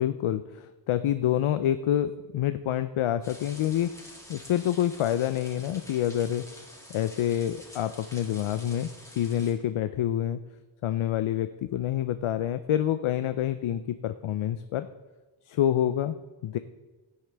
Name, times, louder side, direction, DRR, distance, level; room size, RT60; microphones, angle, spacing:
voice 1, 0.0-3.9 4.3-6.5 6.9-8.9 9.2-10.4 10.8-14.9 15.5-16.1 16.4-16.6, left 11 dB, 80° left, 11 dB, 0.6 m, -27 dB
sound 1, 3.2-9.5, left 1 dB, 5° left, 2.2 m, -48 dB
17.0 x 9.6 x 3.4 m, 1.2 s
wide cardioid pair, 125°, 49 cm